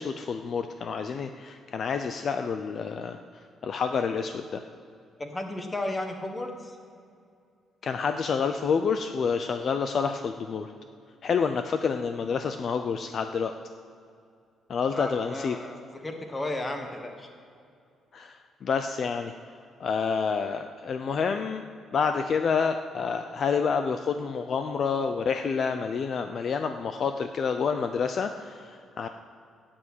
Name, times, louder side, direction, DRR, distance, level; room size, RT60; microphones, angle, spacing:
voice 1, 0.0-3.2 3.6-4.6 7.8-10.7 11.2-13.6 14.7-15.6 18.1-19.3 19.8-21.6 21.9-29.1, left 6 dB, 40° left, 7 dB, 0.6 m, -28 dB
voice 2, 5.2-6.8 14.9-17.3, left 1 dB, 15° left, 5 dB, 1.3 m, -34 dB
13.5 x 8.8 x 8.6 m, 2.4 s
cardioid pair, 165°, 0 cm